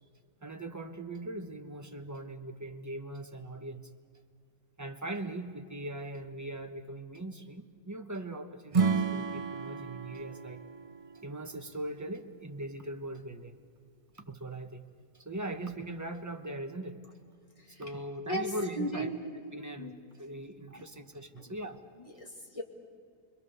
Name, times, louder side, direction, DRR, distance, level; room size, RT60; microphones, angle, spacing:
voice 1, 0.4-3.9 4.8-10.6 11.2-13.6 14.1-14.8 15.1-17.0 17.7-19.1 19.5-21.9, right 1 dB, 15° right, 5 dB, 1.0 m, -40 dB
Acoustic guitar / Strum, 8.7-12.0, right 5 dB, 35° right, 0.6 m, -32 dB
voice 2, 18.3-19.2 19.8-20.0 20.7-20.9 21.4-21.5 22.0-22.6, right 1 dB, 20° left, 0 dB, 2.6 m, -37 dB
29.5 x 22.0 x 6.9 m, 2.4 s
omnidirectional pair, 1.7 m